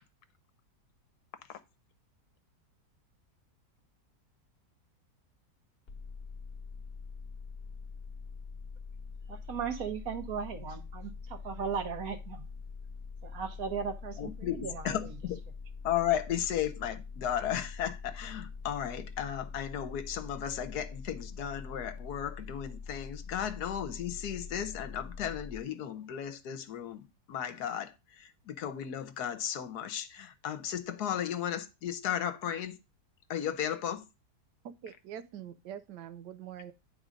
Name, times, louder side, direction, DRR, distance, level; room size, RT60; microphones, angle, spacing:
sound 1, 5.9-25.6, left 5 dB, 40° left, 1.3 m, -44 dB
voice 1, 9.3-12.5 13.2-15.1, right 6 dB, 60° right, 1.5 m, -37 dB
voice 2, 14.2-15.4 15.8-32.8 33.3-34.1, left 10 dB, 75° left, 1.3 m, -35 dB
voice 3, 34.6-36.7, right 9 dB, 85° right, 1.3 m, -44 dB
9.5 x 3.9 x 5.0 m
omnidirectional pair, 1.8 m